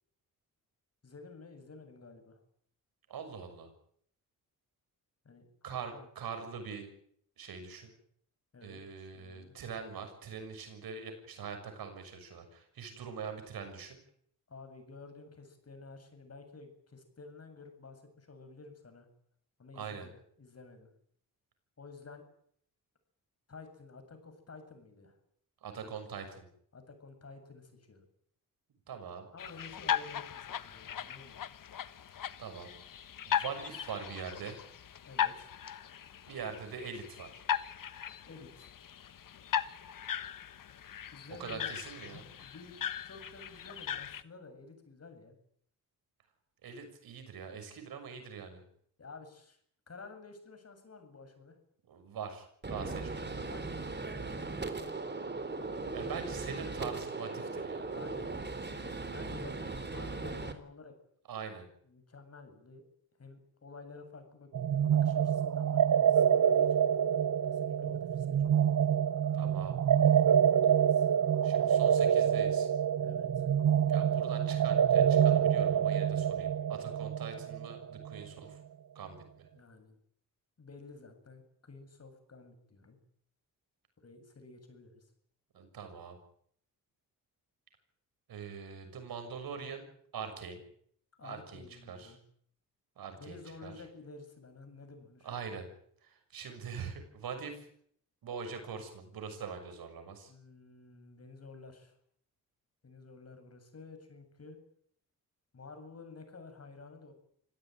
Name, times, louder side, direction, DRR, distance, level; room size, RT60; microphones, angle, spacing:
voice 1, 1.0-2.4 5.2-5.5 5.9-6.1 8.5-9.5 14.5-19.1 19.6-20.9 21.8-22.2 23.5-25.2 25.8-25.9 26.7-28.1 29.3-31.4 35.0-35.5 38.2-38.7 41.1-41.7 42.0-45.3 49.0-49.6 49.9-51.6 53.4-55.0 55.2-56.2 57.9-60.9 61.9-62.8 63.2-64.5 64.9-66.9 67.5-68.6 70.5-71.1 73.0-73.5 79.5-80.0 80.6-83.0 84.0-85.1 91.2-92.2 93.2-95.5 100.3-102.0 102.8-104.6 105.5-107.1, left 3 dB, 45° left, 7 dB, 7.8 m, -52 dB
voice 2, 3.1-3.7 5.6-6.9 7.4-7.9 8.6-14.0 19.7-20.1 25.6-26.5 28.9-29.3 32.4-32.7 33.3-34.6 36.3-37.4 41.4-42.2 46.6-48.6 51.9-53.2 55.9-58.0 61.3-61.7 69.3-69.8 71.4-72.7 73.9-78.6 78.9-79.5 85.5-86.2 88.3-89.8 90.1-90.6 91.2-92.2 93.0-93.7 95.2-95.7 96.0-97.7 98.2-100.3, right 6 dB, 85° right, 7 dB, 6.6 m, -43 dB
sound 1, 29.4-44.2, left 9 dB, 65° left, 1.4 m, -38 dB
Gunshot gunfire, 52.6-60.5, right 3 dB, 30° right, 3.9 m, -38 dB
sound 2, 64.5-78.1, right 8 dB, 55° right, 1.1 m, -26 dB
26.5 x 17.0 x 9.4 m, 0.65 s
cardioid pair, 80°, 35 cm